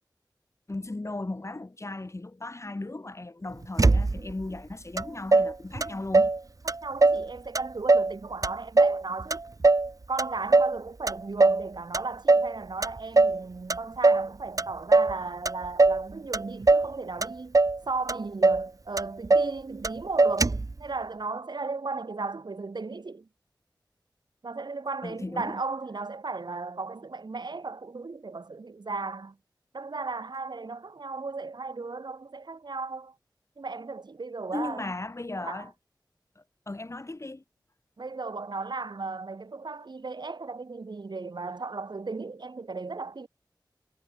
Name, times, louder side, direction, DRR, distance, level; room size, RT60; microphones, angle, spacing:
voice 1, 0.7-6.3 25.0-25.6 34.5-35.7 36.4-37.4, left 2 dB, 35° left, 2.3 m, -36 dB
Motor vehicle (road), 3.8-4.4 5.0-5.1 5.3-6.4 6.7-7.3 7.5-8.1 8.4-9.9 10.2-10.8 11.1-11.6 11.9-12.5 12.8-13.4 13.7-14.3 14.6-15.2 15.4-16.0 16.3-16.9 17.2-17.8 18.1-18.2 18.4-18.7 19.0-19.5 19.8-19.9 20.2-20.7, right 3 dB, 45° right, 1.1 m, -21 dB
voice 2, 6.8-9.4 10.1-17.6 17.9-23.3 24.4-29.4 29.7-33.1 33.6-34.9 35.4-35.7 38.0-43.3, right 3 dB, 65° right, 3.3 m, -35 dB
cardioid pair, 45°, 8 cm